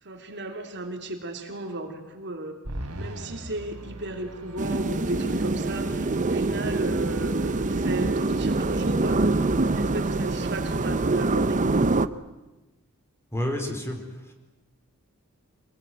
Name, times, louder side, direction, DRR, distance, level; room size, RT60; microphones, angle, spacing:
voice 1, 0.0-2.6 3.0-11.6, right 2 dB, 55° right, 4 dB, 3.1 m, -35 dB
sound 1, 2.6-12.0, right 1 dB, 80° right, 3.4 m, -43 dB
sound 2, 4.6-12.1, right 2 dB, 35° right, 0.8 m, -25 dB
voice 2, 13.3-14.3, left 1 dB, 10° left, 4 dB, 4.4 m, -30 dB
26.5 x 21.0 x 9.4 m, 1.1 s
head